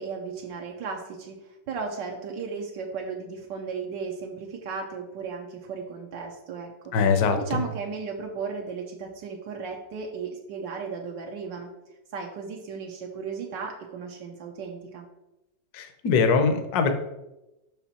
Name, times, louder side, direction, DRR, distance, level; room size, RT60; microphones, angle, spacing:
voice 1, 0.0-6.9 7.4-11.7 12.1-15.1, right 5 dB, 75° right, 1 dB, 1.4 m, -35 dB
voice 2, 6.9-7.6 15.7-16.9, left 5 dB, 65° left, 7 dB, 1.2 m, -22 dB
5.9 x 5.7 x 4.2 m, 0.95 s
omnidirectional pair, 2.0 m